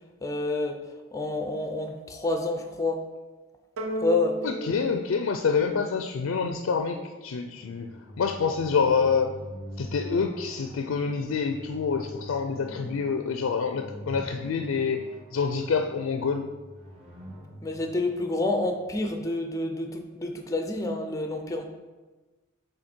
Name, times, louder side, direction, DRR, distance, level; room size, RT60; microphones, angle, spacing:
voice 1, 0.2-0.8 1.1-3.0 4.0-4.4 17.6-21.6, left 2 dB, 15° left, 5 dB, 0.4 m, -28 dB
sound 1, 3.8-6.4, right 1 dB, 80° right, 0.8 m, -35 dB
voice 2, 4.4-7.9 8.2-9.3 9.8-15.0 15.3-16.5, left 5 dB, 80° left, 5 dB, 0.4 m, -27 dB
sound 2, 7.5-19.1, equal, 30° right, 1.4 m, -44 dB
6.4 x 3.9 x 4.4 m, 1.2 s
head